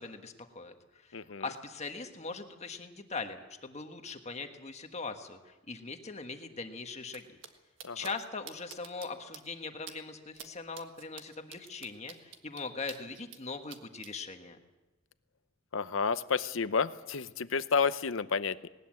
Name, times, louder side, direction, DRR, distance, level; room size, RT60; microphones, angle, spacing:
voice 1, 0.0-7.4 7.9-14.6, left 4 dB, 35° left, 5 dB, 1.5 m, -41 dB
voice 2, 1.1-1.4 7.8-8.0 15.7-18.7, left 5 dB, 70° left, 14 dB, 0.8 m, -30 dB
sound 1, 7.1-7.2 7.4-7.5 7.8-8.1 8.5-9.1 9.3-9.4 9.9-10.0 10.3-10.5 10.7-13.4 13.7-14.1, right 8 dB, 65° right, 1.6 m, -47 dB
19.5 x 19.5 x 7.7 m, 1.1 s
head